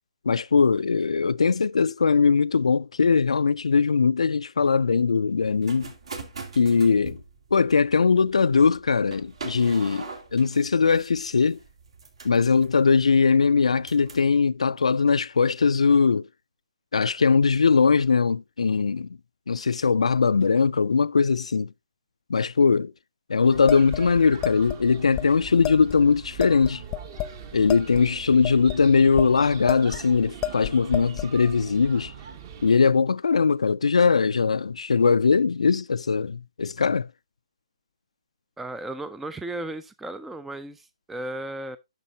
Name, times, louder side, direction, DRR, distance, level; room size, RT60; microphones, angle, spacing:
voice 1, 0.3-5.9 6.6-7.2 7.5-11.6 12.2-16.3 16.9-19.1 19.5-21.7 22.3-22.9 23.3-26.8 27.5-32.1 32.6-37.1, left 5 dB, 85° left, 0.3 m, -21 dB
sound 1, 5.4-14.3, right 4 dB, 65° right, 2.7 m, -43 dB
sound 2, 23.5-32.8, right 7 dB, 35° right, 1.2 m, -42 dB
sound 3, 23.7-24.8 25.1-25.3 25.6-26.0 26.4-27.4 27.7-29.3 29.7-30.1 30.4-31.3, left 12 dB, 20° left, 0.7 m, -31 dB
voice 2, 38.6-41.8, right 1 dB, 5° right, 0.3 m, -35 dB
10.5 x 6.6 x 2.7 m
hypercardioid pair, 145°, 3 cm